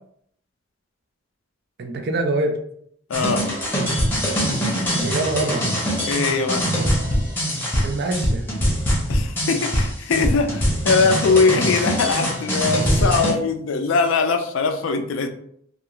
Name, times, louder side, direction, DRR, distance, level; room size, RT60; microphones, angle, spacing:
voice 1, 1.8-2.6 4.9-5.7 7.8-8.5, right 2 dB, 55° right, 4 dB, 0.5 m, -24 dB
voice 2, 3.1-3.4 6.1-6.6 9.1-15.3, left 4 dB, 70° left, 7 dB, 0.4 m, -21 dB
sound 1, 3.1-13.3, equal, 10° left, 0.7 m, -22 dB
2.4 x 2.3 x 2.9 m, 0.67 s
head